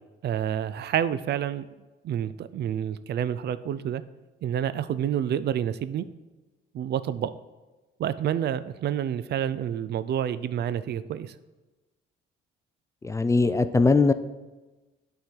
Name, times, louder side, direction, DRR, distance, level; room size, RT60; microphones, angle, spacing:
voice 1, 0.2-1.7 2.0-4.0 4.4-6.1 6.7-7.3 8.0-11.3, right 9 dB, 60° right, 15 dB, 0.4 m, -28 dB
voice 2, 13.0-14.1, left 3 dB, 15° left, 11 dB, 0.3 m, -20 dB
8.6 x 3.8 x 4.5 m, 1.2 s
cardioid pair, 90°, 20 cm